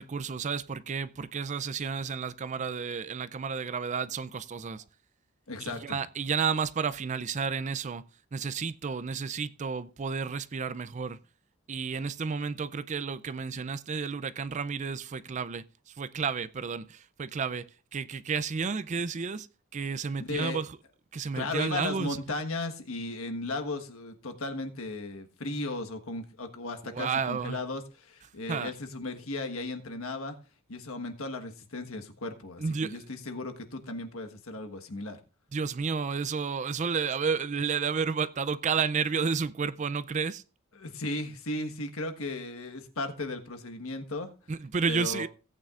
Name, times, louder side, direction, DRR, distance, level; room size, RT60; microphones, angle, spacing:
voice 1, 0.0-4.8 5.6-8.1 8.3-11.2 11.7-15.7 16.0-19.5 19.7-20.8 21.1-22.2 26.8-27.6 28.5-28.7 32.6-33.1 35.5-40.4 44.5-45.3, right 5 dB, 35° right, 0.4 m, -31 dB
voice 2, 5.5-6.0 20.2-20.6 21.3-30.4 30.7-35.2 40.7-44.3 44.9-45.2, left 2 dB, 75° left, 1.4 m, -36 dB
17.0 x 8.9 x 2.5 m
head